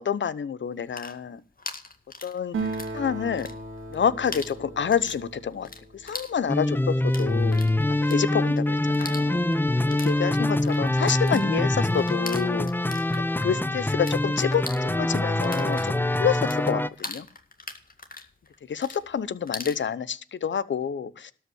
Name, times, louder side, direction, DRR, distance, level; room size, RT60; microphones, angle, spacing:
voice 1, 0.0-1.4 2.2-3.5 3.9-7.6 8.1-9.4 9.9-12.7 13.3-15.9 16.2-17.3 18.7-21.3, left 7 dB, 70° left, 17 dB, 0.8 m, -28 dB
sound 1, 0.7-3.0 3.3-4.0 4.3-14.2 14.5-19.8, left 3 dB, 45° left, 2.0 m, -41 dB
Acoustic guitar, 2.5-6.3, right 3 dB, 90° right, 2.6 m, -36 dB
sound 2, 6.5-16.9, left 1 dB, 10° left, 0.7 m, -24 dB
12.5 x 5.6 x 9.3 m, 0.43 s
cardioid pair, 40°, 20 cm